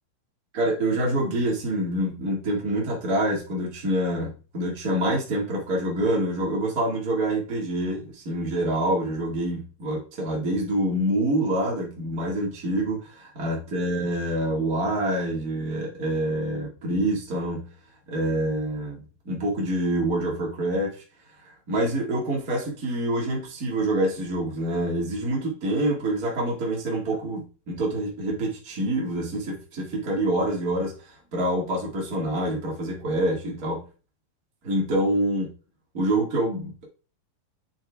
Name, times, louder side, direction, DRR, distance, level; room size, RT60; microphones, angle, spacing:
voice 1, 0.5-17.7 18.1-21.0 21.4-30.9 31.3-33.8 34.6-35.5 35.9-36.8, right 1 dB, 55° right, -2 dB, 0.9 m, -26 dB
8.5 x 4.7 x 3.5 m, 0.34 s
omnidirectional pair, 5.2 m